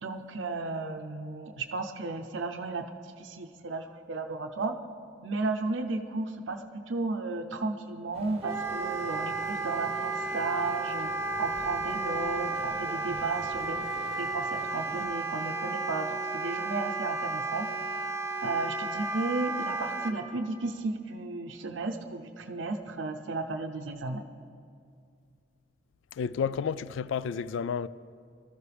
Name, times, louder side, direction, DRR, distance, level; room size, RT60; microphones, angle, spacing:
voice 1, 0.0-2.9 3.2-4.8 5.2-11.1 11.4-13.8 14.2-17.7 18.4-24.3, right 3 dB, 75° right, 0.6 m, -34 dB
sound 1, 8.1-15.1, right 1 dB, 30° right, 0.9 m, -47 dB
Wind instrument woodwind instrument, 8.4-20.1, right 3 dB, 15° right, 0.6 m, -33 dB
voice 2, 26.2-27.9, left 6 dB, 75° left, 0.3 m, -31 dB
19.0 x 13.0 x 3.4 m
head